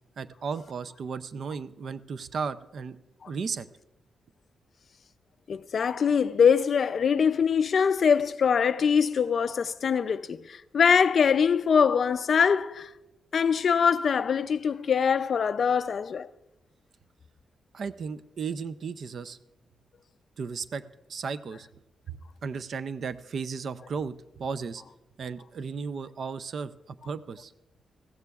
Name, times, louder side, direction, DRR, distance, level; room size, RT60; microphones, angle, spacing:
voice 1, 0.2-3.0 3.3-3.7 17.7-19.4 20.4-20.8 21.1-21.7 22.1-24.8 25.2-27.5, right 5 dB, 45° right, 0.4 m, -35 dB
voice 2, 5.5-12.9 13.3-16.3, left 6 dB, 45° left, 0.4 m, -23 dB
20.5 x 16.0 x 2.3 m
wide cardioid pair, 180°, 0 cm